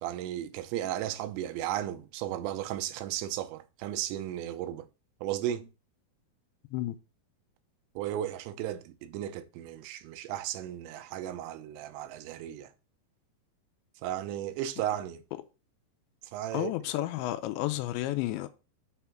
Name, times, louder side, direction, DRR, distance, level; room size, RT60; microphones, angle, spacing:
voice 1, 0.0-4.9 5.2-5.7 8.0-12.7 14.0-15.2 16.3-16.7, right 12 dB, 85° right, 2.9 m, -35 dB
voice 2, 16.5-18.5, left 15 dB, 80° left, 2.9 m, -31 dB
6.9 x 3.6 x 5.7 m
omnidirectional pair, 5.2 m